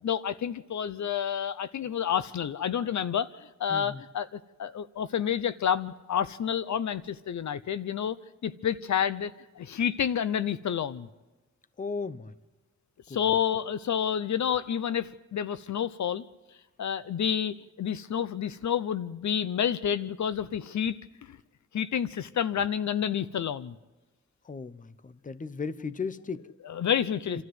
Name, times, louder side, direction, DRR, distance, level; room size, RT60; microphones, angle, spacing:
voice 1, 0.0-8.2 8.4-11.1 13.1-16.2 16.8-21.0 21.3-21.4 21.7-23.7 26.6-27.4, left 8 dB, 70° left, 15 dB, 0.8 m, -29 dB
voice 2, 3.7-4.0 11.8-12.3 24.5-26.5 27.3-27.4, left 5 dB, 25° left, 15 dB, 0.8 m, -36 dB
28.5 x 13.0 x 7.9 m, 1.2 s
wide cardioid pair, 105°, 30 cm